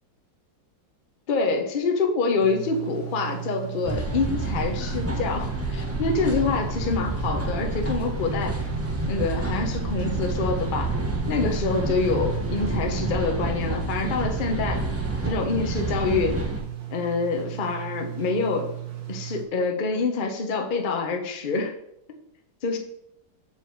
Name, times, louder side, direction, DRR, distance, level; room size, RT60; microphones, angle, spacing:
voice 1, 1.3-8.6 9.1-11.0 11.3-14.9 15.2-16.4 16.9-18.7 19.1-21.7 22.6-22.8, left 4 dB, 40° left, 3 dB, 0.7 m, -26 dB
sound 1, 2.4-19.4, right 13 dB, 75° right, 1.7 m, -36 dB
sound 2, 3.8-16.6, right 1 dB, 15° right, 0.5 m, -29 dB
7.2 x 4.5 x 4.5 m, 0.80 s
omnidirectional pair, 2.0 m